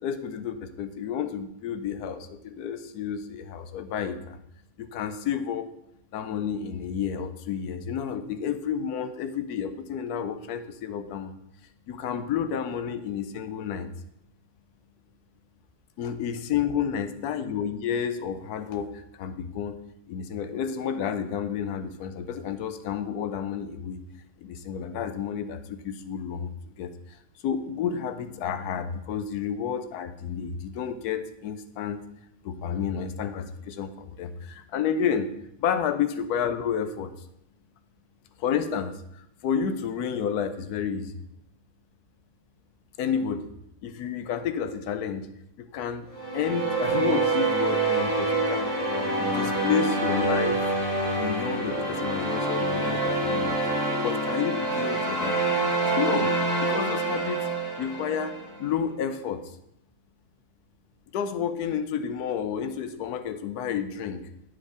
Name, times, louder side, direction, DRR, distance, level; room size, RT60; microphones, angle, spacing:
voice 1, 0.0-4.4 4.8-5.7 6.1-11.3 11.9-13.9 16.0-19.8 20.1-24.0 24.4-26.5 26.8-26.9 27.4-32.0 32.4-35.3 35.6-37.1 38.4-41.2 43.0-43.5 43.8-45.3 45.6-48.8 49.2-50.7 51.1-53.6 54.0-55.7 56.0-57.5 57.8-59.5 61.1-64.2, left 7 dB, 85° left, 10 dB, 1.2 m, -30 dB
sound 1, 46.1-58.5, right 2 dB, 30° left, 1.7 m, -26 dB
8.9 x 4.8 x 4.8 m, 0.78 s
omnidirectional pair, 1.6 m